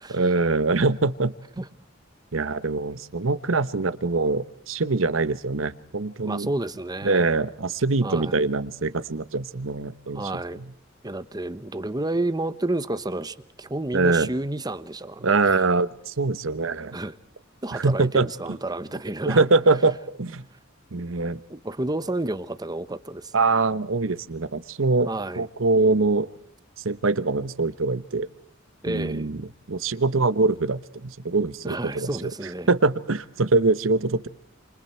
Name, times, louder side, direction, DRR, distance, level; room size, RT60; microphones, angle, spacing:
voice 1, 0.1-1.3 2.3-6.5 7.0-10.3 13.9-14.3 15.2-17.0 17.7-18.3 19.2-20.4 20.9-21.4 23.3-25.1 25.4-26.3 26.8-28.3 28.9-29.4 29.7-32.3 32.7-34.3, right 3 dB, 85° right, 1.1 m, -23 dB
voice 2, 6.2-7.3 8.0-8.5 10.1-10.6 11.0-15.4 16.9-17.2 17.6-19.5 21.5-23.3 25.1-25.5 28.8-29.4 31.6-32.7, right 2 dB, 20° right, 1.0 m, -30 dB
29.0 x 27.5 x 4.5 m
head